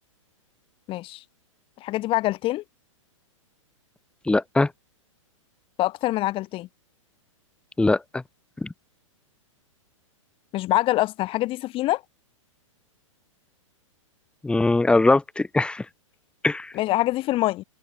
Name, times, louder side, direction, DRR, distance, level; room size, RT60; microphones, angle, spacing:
voice 1, 0.9-1.2 1.8-2.6 5.8-6.7 10.5-12.0 16.7-17.6, left 17 dB, 30° left, 6.4 m, -25 dB
voice 2, 4.3-4.7 7.8-8.2 8.6-8.7 14.4-15.9 16.4-16.7, left 2 dB, 5° left, 5.7 m, -21 dB
open air
hypercardioid pair, 120°, 17 cm